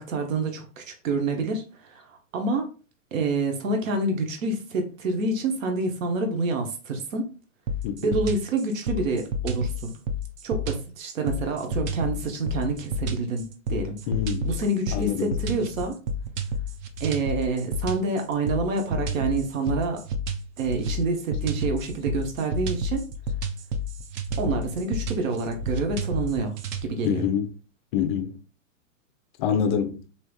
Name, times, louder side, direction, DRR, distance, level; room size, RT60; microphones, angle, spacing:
voice 1, 0.0-2.7 3.1-7.3 8.0-9.9 10.4-14.0 14.4-16.0 17.0-20.0 20.6-23.1 24.4-26.6 26.8-27.3, right 3 dB, 75° right, 0.9 m, -27 dB
sound 1, 7.7-26.9, left 1 dB, 35° right, 0.5 m, -30 dB
voice 2, 7.8-8.2 14.1-14.5 14.9-15.5 27.0-27.5 27.9-28.3 29.4-30.0, left 8 dB, 40° left, 0.5 m, -26 dB
3.4 x 2.7 x 2.2 m
hypercardioid pair, 125°, 40 cm